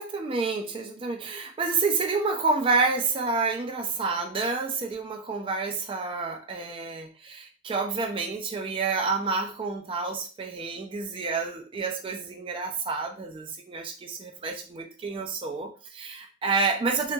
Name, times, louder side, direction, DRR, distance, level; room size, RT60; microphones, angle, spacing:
voice 1, 0.0-17.1, right 4 dB, 30° right, 3 dB, 0.3 m, -29 dB
2.8 x 2.6 x 2.2 m, 0.34 s
head